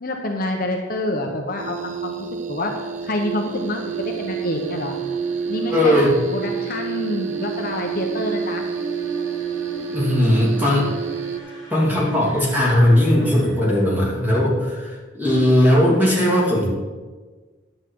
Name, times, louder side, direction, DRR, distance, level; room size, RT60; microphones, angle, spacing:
voice 1, 0.0-2.7 3.0-4.9 5.5-8.6, left 1 dB, 45° left, 2 dB, 0.9 m, -27 dB
sound 1, 1.6-11.4, right 7 dB, 40° right, 0.5 m, -29 dB
sound 2, 2.6-14.5, equal, 85° right, 3.2 m, -40 dB
voice 2, 5.7-6.1 9.8-10.9 11.7-16.7, left 1 dB, 10° right, -6 dB, 2.7 m, -18 dB
10.5 x 7.7 x 4.6 m, 1.3 s
head